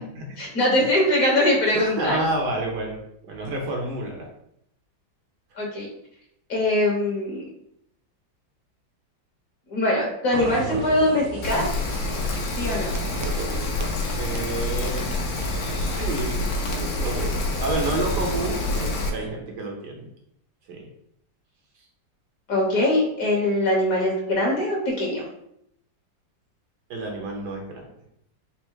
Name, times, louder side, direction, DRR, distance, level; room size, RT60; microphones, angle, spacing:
voice 1, 0.4-2.2 5.6-5.9 6.5-7.4 9.7-11.7 12.6-12.9 22.5-25.3, left 1 dB, 50° left, -2 dB, 1.3 m, -22 dB
voice 2, 1.7-3.0 3.2-4.3 14.2-15.1 15.4-20.1 20.7-20.9 26.9-27.9, right 2 dB, 65° right, 0 dB, 1.4 m, -30 dB
sound 1, 10.3-19.3, right 5 dB, 90° right, 0.7 m, -36 dB
Rain, 11.4-19.1, left 2 dB, 85° left, 1.4 m, -27 dB
4.3 x 2.1 x 4.5 m, 0.74 s
omnidirectional pair, 2.0 m